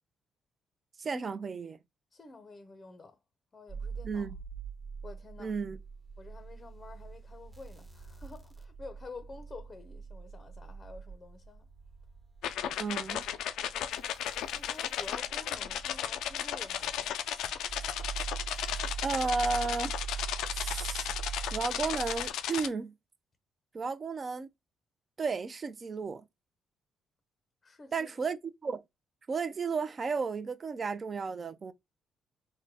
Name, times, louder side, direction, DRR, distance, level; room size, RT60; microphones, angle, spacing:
voice 1, 1.0-1.8 4.0-4.4 5.4-5.8 12.8-13.2 19.0-19.9 20.5-21.1 21.5-22.9 23.7-24.5 25.2-26.2 27.9-28.8 29.3-31.7, right 4 dB, 40° right, 0.5 m, -33 dB
voice 2, 2.1-3.2 3.5-4.3 5.0-5.6 6.2-11.7 14.5-17.2 27.6-28.1, left 3 dB, 30° left, 0.6 m, -49 dB
sound 1, 3.7-22.3, right 6 dB, 20° right, 0.8 m, -43 dB
sound 2, 12.4-22.7, left 10 dB, 85° left, 0.3 m, -35 dB
3.7 x 2.1 x 2.8 m
cardioid pair, 90°, 0 cm